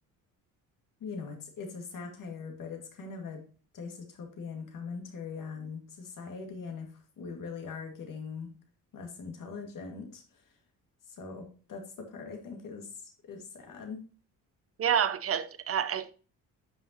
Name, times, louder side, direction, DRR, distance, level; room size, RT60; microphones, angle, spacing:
voice 1, 1.0-3.4 3.7-6.9 7.2-8.5 8.9-10.2 11.1-11.8 12.1-14.0, left 5 dB, 60° left, 2.1 m, -41 dB
voice 2, 14.8-16.1, right 8 dB, 40° right, 0.7 m, -28 dB
9.1 x 5.5 x 2.9 m
supercardioid pair, 65°, 36 cm